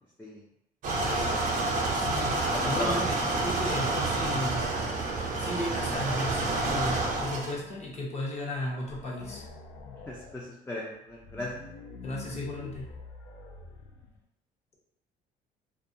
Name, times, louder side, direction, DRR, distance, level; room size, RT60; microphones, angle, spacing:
sound 1, 0.8-7.5, right 2 dB, 50° right, 0.6 m, -29 dB
voice 1, 0.9-1.4 2.5-3.4 10.1-11.6, left 1 dB, 10° left, -4 dB, 0.4 m, -37 dB
voice 2, 2.0-4.6 5.4-9.5 12.0-12.9, left 1 dB, 40° left, -4 dB, 0.8 m, -35 dB
sound 2, 6.7-8.2 8.5-8.6 8.9-10.4 11.1-14.2, left 4 dB, 65° left, 0.5 m, -46 dB
2.3 x 2.2 x 2.6 m, 0.79 s
cardioid pair, 110°, 17 cm